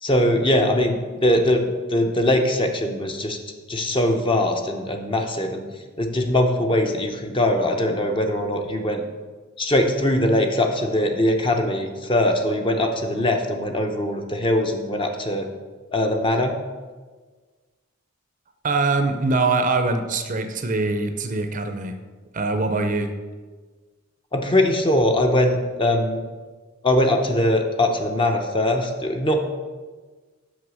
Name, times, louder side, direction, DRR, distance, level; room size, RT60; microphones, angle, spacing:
voice 1, 0.0-1.6 1.9-3.4 3.7-5.6 6.0-9.0 9.6-15.5 15.9-16.5 24.3-26.2 26.8-29.4, left 1 dB, 25° left, 4 dB, 0.6 m, -21 dB
voice 2, 18.6-22.0 22.3-23.1, right 3 dB, 35° right, 7 dB, 0.5 m, -23 dB
6.2 x 5.5 x 6.2 m, 1.4 s
head